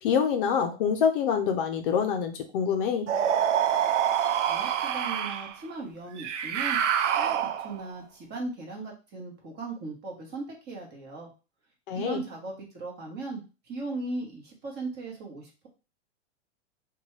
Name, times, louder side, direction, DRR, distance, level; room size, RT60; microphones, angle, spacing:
voice 1, 0.0-3.1 11.9-12.2, left 7 dB, 50° left, 5 dB, 0.5 m, -26 dB
sound 1, 3.1-5.5 6.2-7.9, right 9 dB, 90° right, 0.5 m, -26 dB
voice 2, 4.4-6.8 7.1-11.3 11.9-15.7, right 3 dB, 30° right, 0 dB, 1.0 m, -38 dB
2.6 x 2.3 x 3.1 m, 0.31 s
hypercardioid pair, 130°, 35 cm